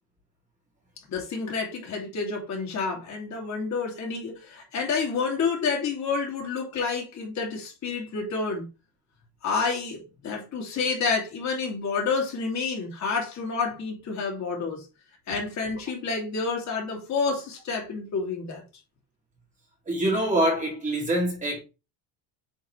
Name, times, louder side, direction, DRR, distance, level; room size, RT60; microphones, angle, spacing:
voice 1, 1.1-8.6 9.4-14.9 15.3-18.6, left 4 dB, 40° left, 2.7 m, -29 dB
voice 2, 19.9-21.6, right 1 dB, 15° right, 2.7 m, -25 dB
8.5 x 4.7 x 3.2 m
cardioid pair, 160°, 45 cm